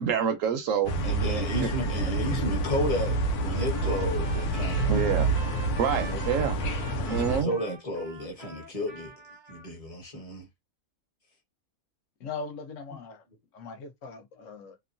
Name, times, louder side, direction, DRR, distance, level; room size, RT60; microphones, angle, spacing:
voice 1, 0.0-0.9 1.6-1.7 4.9-5.3 5.8-6.6 7.1-7.5, right 7 dB, 70° right, 0.9 m, -27 dB
sound 1, 0.9-7.4, right 2 dB, 85° left, 1.1 m, -28 dB
voice 2, 1.0-4.9 5.9-6.2 7.0-9.1 9.5-10.5, equal, 25° left, 1.0 m, -33 dB
Trumpet, 2.8-9.7, right 4 dB, 25° right, 0.6 m, -46 dB
voice 3, 12.2-13.2 13.5-14.8, left 4 dB, 65° left, 1.0 m, -40 dB
3.0 x 2.1 x 2.5 m
omnidirectional pair, 1.6 m